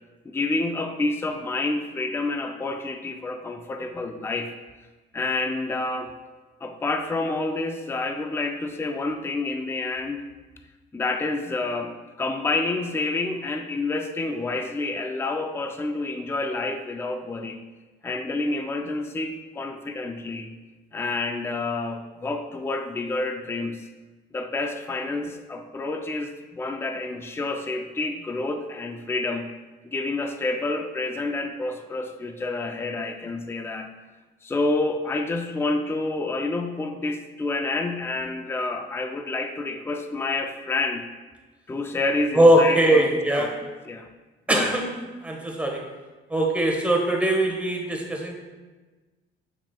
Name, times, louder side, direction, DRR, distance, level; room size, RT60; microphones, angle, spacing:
voice 1, 0.3-4.5 5.1-6.1 6.6-10.2 10.9-17.6 18.0-20.5 20.9-23.8 24.3-29.5 29.8-33.9 34.4-41.1 41.7-43.5 43.9-44.1 44.5-44.7, left 2 dB, 10° left, 5 dB, 0.4 m, -28 dB
voice 2, 42.3-43.6 44.5-44.9 45.2-45.9 46.3-48.4, right 1 dB, 5° right, 0 dB, 1.2 m, -20 dB
7.0 x 6.0 x 2.2 m, 1.3 s
cardioid pair, 90°, 20 cm